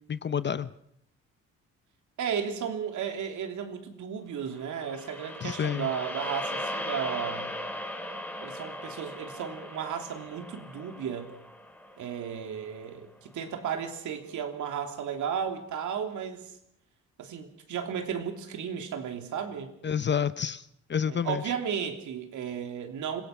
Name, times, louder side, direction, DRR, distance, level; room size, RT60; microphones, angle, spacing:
voice 1, 0.1-0.7 5.4-5.9 19.8-20.6 20.9-21.4, left 7 dB, 35° left, 14 dB, 0.8 m, -29 dB
voice 2, 2.2-7.5 8.4-11.3 12.0-16.5 17.2-19.7 21.0-23.2, right 7 dB, 75° right, 5 dB, 3.2 m, -34 dB
sound 1, 4.6-12.9, left 1 dB, 5° left, 4.0 m, -38 dB
26.5 x 17.0 x 6.0 m, 0.71 s
cardioid pair, 90°, 30 cm